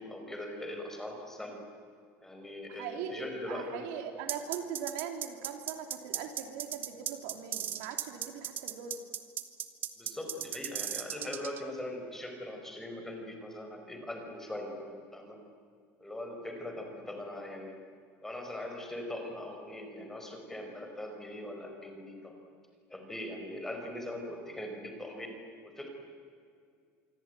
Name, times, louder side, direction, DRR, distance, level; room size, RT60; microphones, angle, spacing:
voice 1, 0.0-1.6 2.2-3.8 10.0-15.4 16.0-17.7 18.2-22.3 22.9-25.3 25.6-25.9, left 1 dB, 5° left, 3 dB, 4.9 m, -41 dB
voice 2, 2.7-9.0, right 7 dB, 80° right, 5 dB, 3.6 m, -40 dB
sound 1, 4.3-11.6, right 10 dB, 35° right, 1.6 m, -36 dB
26.5 x 23.5 x 9.3 m, 2.3 s
cardioid pair, 160°, 6 cm